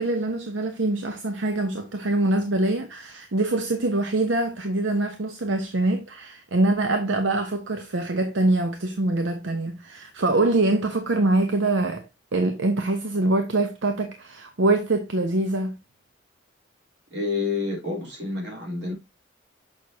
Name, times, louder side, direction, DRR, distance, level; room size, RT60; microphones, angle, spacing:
voice 1, 0.0-12.0 12.3-15.8, right 2 dB, 85° right, 0.8 m, -24 dB
voice 2, 17.1-18.9, left 3 dB, 65° right, 3.5 m, -28 dB
6.6 x 6.2 x 2.7 m
head